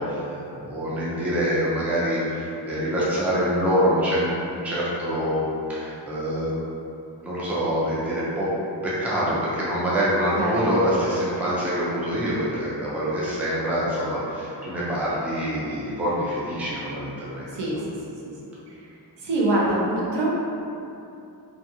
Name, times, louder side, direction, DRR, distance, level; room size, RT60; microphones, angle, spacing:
voice 1, 0.0-6.5 7.2-8.5 8.8-17.5, equal, 5° right, -8 dB, 0.4 m, -25 dB
voice 2, 17.5-18.3 18.7-20.4, right 1 dB, 75° right, -5 dB, 0.7 m, -25 dB
2.5 x 2.5 x 2.6 m, 2.7 s
wide cardioid pair, 170°, 43 cm